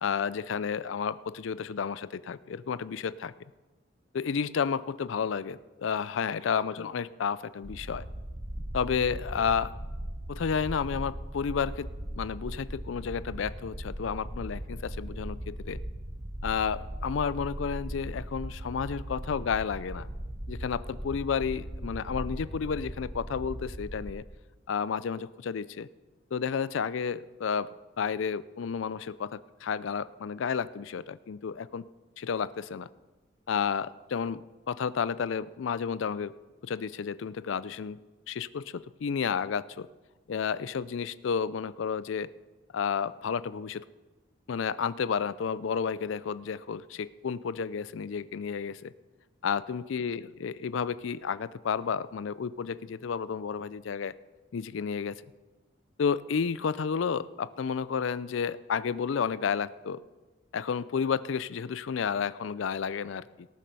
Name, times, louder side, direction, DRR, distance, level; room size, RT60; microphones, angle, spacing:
voice 1, 0.0-3.3 4.1-8.1 8.7-9.7 10.3-15.8 16.4-20.1 20.5-24.2 24.7-25.9 26.3-27.7 28.0-31.9 32.2-32.9 33.5-36.3 36.6-38.0 38.3-39.9 40.3-42.3 42.7-43.8 44.5-48.9 49.4-54.1 54.5-55.2 56.0-60.0 60.5-63.5, left 6 dB, 75° left, 17 dB, 0.4 m, -31 dB
sound 1, 7.6-24.1, right 1 dB, 75° right, 1.8 m, -39 dB
18.0 x 7.5 x 5.4 m, 1.2 s
head